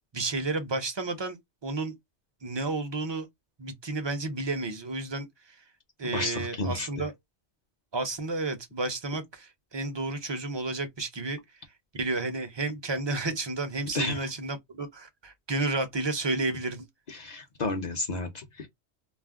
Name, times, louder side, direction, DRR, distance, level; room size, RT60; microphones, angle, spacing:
voice 1, 0.1-1.4 1.6-1.9 2.4-3.3 3.6-5.6 6.0-7.1 7.9-11.4 11.9-16.9, right 2 dB, 35° right, 0.5 m, -31 dB
voice 2, 6.0-6.9 13.9-14.2 17.1-18.7, left 2 dB, 50° left, 0.6 m, -32 dB
2.4 x 2.0 x 3.4 m
omnidirectional pair, 1.1 m